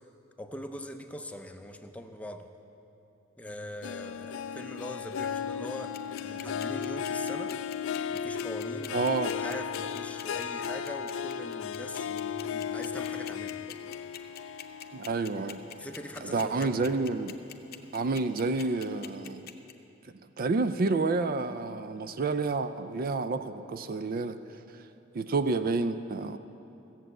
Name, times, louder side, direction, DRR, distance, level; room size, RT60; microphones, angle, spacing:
voice 1, 0.4-2.5 3.4-7.6 8.0-13.6 15.7-16.8, left 1 dB, 5° left, 5 dB, 0.6 m, -42 dB
Harp, 3.8-16.5 17.0-17.4 17.8-17.9, left 7 dB, 85° left, 0.3 m, -36 dB
sound 1, 5.9-19.7, left 10 dB, 50° left, 0.7 m, -44 dB
voice 2, 8.9-9.3 14.9-15.6 16.2-17.3 17.9-19.5 20.4-24.4 25.1-26.4, right 3 dB, 50° right, 11 dB, 0.4 m, -29 dB
15.5 x 7.5 x 7.9 m, 2.8 s
head